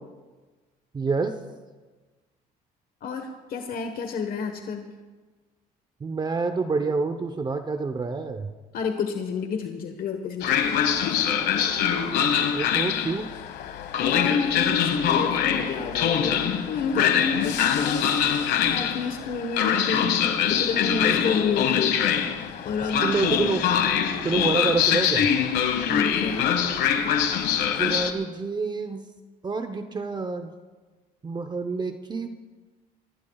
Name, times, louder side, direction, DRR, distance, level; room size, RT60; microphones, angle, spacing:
voice 1, 0.9-1.4 6.0-8.5 12.5-13.3 22.8-23.7 24.2-25.3 27.8-29.1 29.4-30.6 31.2-32.3, right 4 dB, 25° right, 8 dB, 0.8 m, -27 dB
voice 2, 3.0-4.9 8.7-10.7 11.1-11.2 14.0-18.2 18.6-22.0 22.6-23.1 25.9-26.5, left 5 dB, 60° left, 5 dB, 1.3 m, -30 dB
Train, 10.4-28.1, left 8 dB, 75° left, 1.4 m, -24 dB
24.5 x 18.0 x 2.4 m, 1.3 s
cardioid pair, 110°, 17 cm